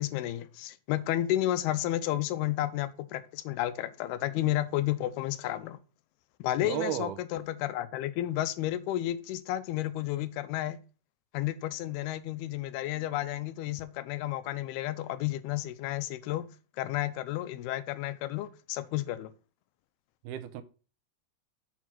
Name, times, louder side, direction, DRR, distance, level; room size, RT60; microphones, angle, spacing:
voice 1, 0.0-5.8 6.4-10.8 11.3-16.5 16.8-19.3, left 14 dB, 85° left, 2.6 m, -32 dB
voice 2, 6.6-7.2 20.2-20.6, right 11 dB, 85° right, 2.6 m, -33 dB
7.0 x 4.6 x 5.9 m
omnidirectional pair, 4.5 m